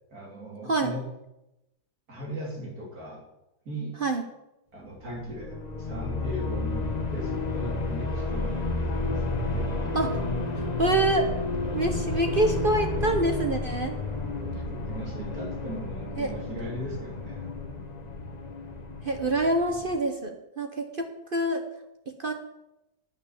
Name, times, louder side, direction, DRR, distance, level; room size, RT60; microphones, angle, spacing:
voice 1, 0.1-1.0 2.1-3.3 3.7-3.9 4.7-10.0 14.4-17.6, equal, 65° right, -1 dB, 3.6 m, -38 dB
sound 1, 5.0-19.9, left 2 dB, 30° left, 1.2 m, -31 dB
voice 2, 10.6-11.3 11.7-14.0 16.2-16.3 19.0-21.6 22.2-22.3, right 2 dB, 40° right, 5 dB, 0.9 m, -26 dB
9.4 x 9.1 x 7.0 m, 0.91 s
omnidirectional pair, 1.7 m